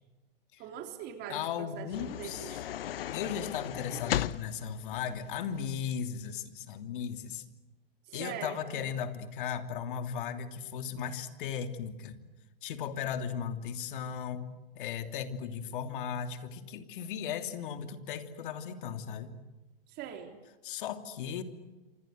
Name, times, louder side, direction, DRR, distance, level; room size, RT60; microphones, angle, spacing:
voice 1, 0.6-2.6 8.1-8.9 19.9-20.4, right 8 dB, 35° right, 5 dB, 3.6 m, -42 dB
voice 2, 1.3-2.5 3.1-7.4 8.1-12.2 12.6-14.4 14.7-19.3 20.6-21.4, left 8 dB, 60° left, 8 dB, 3.0 m, -36 dB
sound 1, 1.9-5.7, left 11 dB, 75° left, 1.0 m, -37 dB
27.5 x 26.5 x 7.9 m, 1.1 s
hypercardioid pair, 130°, 29 cm